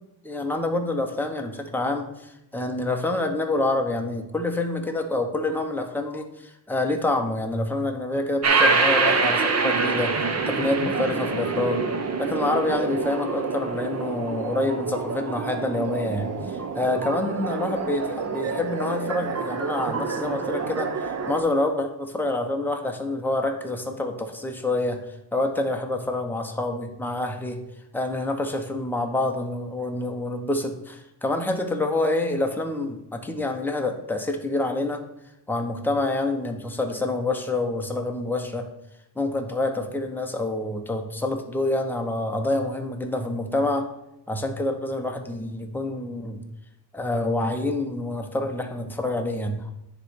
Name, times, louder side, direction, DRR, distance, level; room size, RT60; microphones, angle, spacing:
voice 1, 0.2-11.8 12.2-25.0 25.3-27.6 27.9-35.0 35.5-38.7 39.2-43.9 44.3-46.4 46.9-49.6, left 2 dB, 5° left, 3 dB, 1.0 m, -27 dB
sound 1, 8.4-21.4, right 4 dB, 35° right, 0.9 m, -26 dB
9.8 x 3.3 x 5.7 m, 0.87 s
cardioid pair, 105°, 43 cm